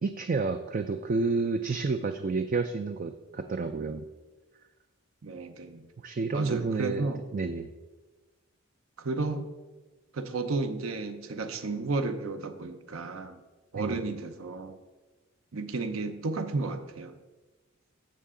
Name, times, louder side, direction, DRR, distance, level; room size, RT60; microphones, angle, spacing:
voice 1, 0.0-4.0 6.0-7.7 13.7-14.0, right 4 dB, 40° right, 8 dB, 0.4 m, -30 dB
voice 2, 5.2-5.8 6.3-7.2 9.0-9.5 10.1-13.4 13.7-14.8 15.5-17.2, right 3 dB, 70° right, 8 dB, 0.7 m, -33 dB
14.0 x 5.6 x 3.8 m, 1.2 s
head